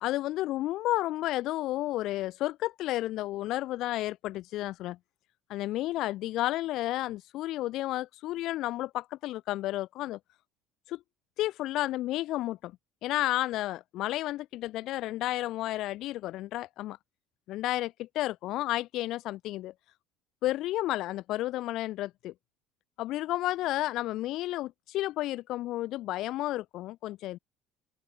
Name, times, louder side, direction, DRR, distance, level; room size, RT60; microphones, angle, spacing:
voice 1, 0.0-5.0 5.5-10.2 10.9-11.0 11.4-12.7 13.0-17.0 17.5-19.7 20.4-22.3 23.0-27.4, left 16 dB, 65° left, 1.9 m, -32 dB
open air
supercardioid pair, 95°, 0 cm